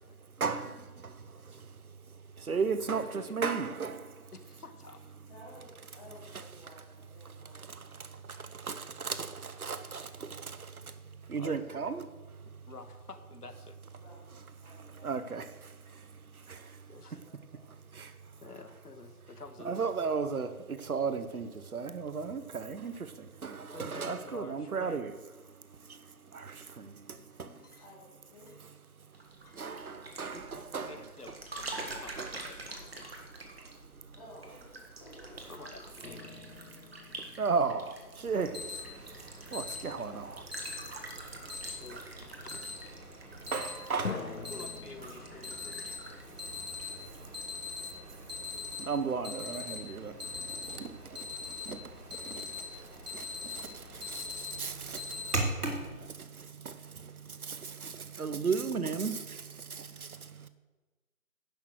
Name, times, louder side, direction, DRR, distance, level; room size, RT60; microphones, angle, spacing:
voice 1, 0.4-1.8 2.1-4.3 7.2-10.9 11.2-12.1 14.7-16.9 17.1-17.4 17.9-18.2 19.6-25.1 25.8-27.7 29.5-31.0 31.8-32.3 33.5-34.2 36.7-36.8 37.2-40.7 43.5-44.5 47.2-47.3 48.8-60.5, right 5 dB, 70° right, 1.0 m, -36 dB
voice 2, 2.9-3.4 4.3-5.0 11.4-11.9 12.4-13.8 16.9-17.2 18.4-19.9 23.5-25.1 26.5-26.6 27.5-27.9 28.5-28.6 29.4-33.6 34.9-35.0 35.5-36.3 41.0-42.6 44.5-45.9 46.3-46.4 50.6-50.9 59.8-59.9, left 3 dB, 85° left, 1.6 m, -50 dB
voice 3, 5.2-7.7 14.0-15.4 17.0-17.8 27.8-28.5 34.2-35.4 38.7-38.9 39.2-39.4 39.9-40.4 50.1-50.4, left 1 dB, 25° left, 2.8 m, -55 dB
sound 1, 29.1-47.5 47.8-48.2, right 2 dB, 40° right, 1.7 m, -47 dB
sound 2, 36.0-39.1 44.0-47.7, left 5 dB, 60° left, 1.0 m, -45 dB
Alarm, 38.3-55.9, left 1 dB, 85° right, 3.1 m, -41 dB
11.0 x 6.7 x 6.5 m
figure-of-eight pair, 165°, 45 cm